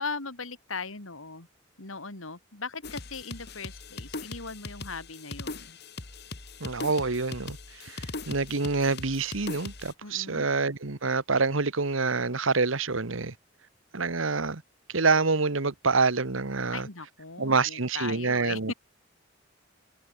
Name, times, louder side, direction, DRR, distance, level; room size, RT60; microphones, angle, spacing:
voice 1, 0.0-1.5 1.8-5.8 10.0-10.5 16.7-18.7, left 4 dB, 80° left, 3.4 m, -38 dB
sound 1, 2.8-9.9, left 3 dB, 55° left, 2.3 m, -40 dB
voice 2, 6.6-13.3 13.9-14.6 14.9-16.9 17.4-18.7, right 4 dB, 75° right, 1.4 m, -27 dB
head